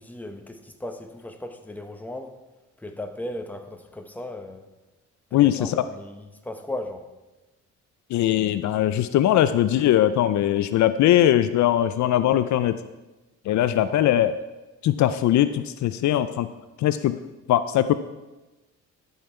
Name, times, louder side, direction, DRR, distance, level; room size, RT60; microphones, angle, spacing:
voice 1, 0.0-2.4 2.8-4.7 5.3-7.0 13.6-14.1, left 1 dB, 5° left, 5 dB, 1.0 m, -37 dB
voice 2, 5.3-5.8 8.1-12.8 13.5-14.4 14.8-16.5 16.8-17.1 17.5-17.9, left 12 dB, 70° left, 12 dB, 0.5 m, -20 dB
12.5 x 5.6 x 4.4 m, 1.1 s
cardioid pair, 90°, 30 cm